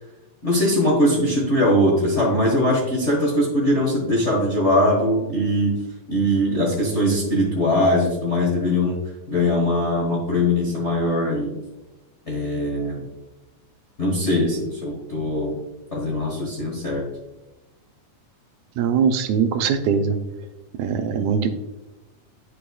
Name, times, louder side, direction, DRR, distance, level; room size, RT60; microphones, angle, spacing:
voice 1, 0.4-5.8 6.1-9.0 9.3-11.5 12.3-13.0 14.0-15.5 15.9-17.0, left 1 dB, 40° left, -4 dB, 1.0 m, -21 dB
voice 2, 18.8-20.2 20.8-21.5, right 6 dB, 85° right, 8 dB, 2.0 m, -21 dB
10.0 x 4.7 x 2.3 m, 1.1 s
omnidirectional pair, 3.3 m